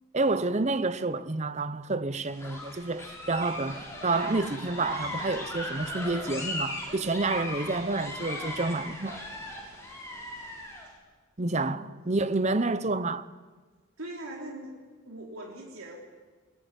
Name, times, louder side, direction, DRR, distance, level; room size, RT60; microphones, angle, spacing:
voice 1, 0.1-9.2 11.4-13.3, right 3 dB, 35° right, 0.8 m, -29 dB
sound 1, 2.3-10.9, left 1 dB, 15° left, 5.9 m, -38 dB
voice 2, 11.5-12.0 14.0-14.7 15.1-16.0, right 1 dB, 80° right, 3.7 m, -41 dB
21.0 x 21.0 x 9.2 m
head